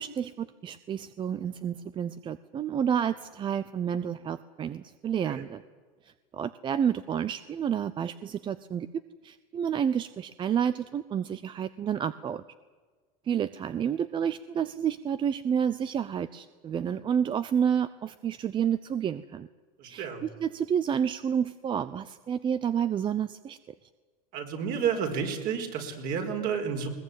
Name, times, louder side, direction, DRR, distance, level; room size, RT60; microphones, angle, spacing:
voice 1, 0.0-5.6 6.3-8.9 9.2-12.4 13.3-19.5 19.9-23.6, right 8 dB, 25° right, 14 dB, 0.7 m, -30 dB
voice 2, 19.8-20.2 24.3-26.9, right 7 dB, 50° right, 4 dB, 4.5 m, -31 dB
21.5 x 20.0 x 9.3 m, 1.4 s
supercardioid pair, 130°, 19 cm